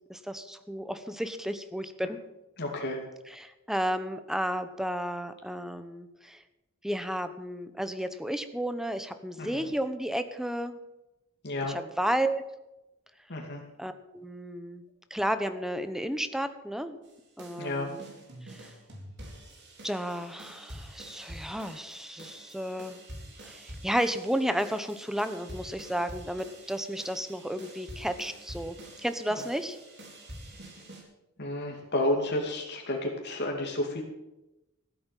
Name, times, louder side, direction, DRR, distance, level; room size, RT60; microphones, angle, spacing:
voice 1, 0.1-2.2 3.3-6.4 6.8-10.8 11.6-12.4 13.8-14.8 15.1-17.0 17.4-18.0 18.4-18.7 19.8-23.0 23.4-29.8, equal, ahead, 10 dB, 1.0 m, -32 dB
voice 2, 2.6-3.0 9.4-9.6 11.4-11.8 13.3-13.6 17.6-17.9 31.4-34.0, left 1 dB, 50° left, 1 dB, 2.5 m, -31 dB
sound 1, 17.0-31.0, right 1 dB, 55° right, 4.4 m, -47 dB
15.0 x 8.7 x 7.5 m, 0.95 s
head